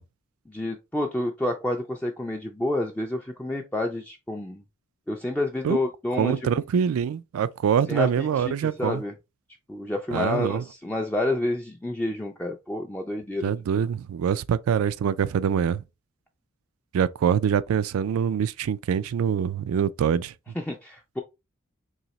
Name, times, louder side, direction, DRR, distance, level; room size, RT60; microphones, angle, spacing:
voice 1, 0.5-4.6 5.1-6.5 7.9-9.1 9.7-13.5 20.6-21.2, left 1 dB, 5° left, 0.3 m, -29 dB
voice 2, 6.2-9.0 10.1-10.6 13.4-15.8 16.9-20.3, right 8 dB, 80° right, 0.3 m, -24 dB
4.0 x 2.8 x 3.0 m
head